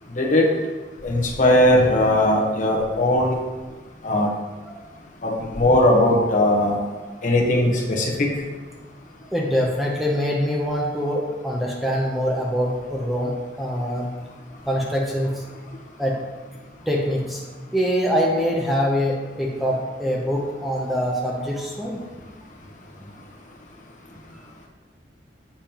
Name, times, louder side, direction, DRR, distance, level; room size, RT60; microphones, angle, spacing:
voice 1, 0.1-0.5 1.0-3.3 4.0-4.3 5.2-6.8 7.2-8.3, left 1 dB, 45° left, -2 dB, 1.0 m, -19 dB
voice 2, 9.3-14.1 14.7-15.4 16.0-16.2 16.9-17.4 17.7-22.0, equal, ahead, -2 dB, 0.6 m, -24 dB
7.0 x 5.2 x 2.9 m, 1.2 s
head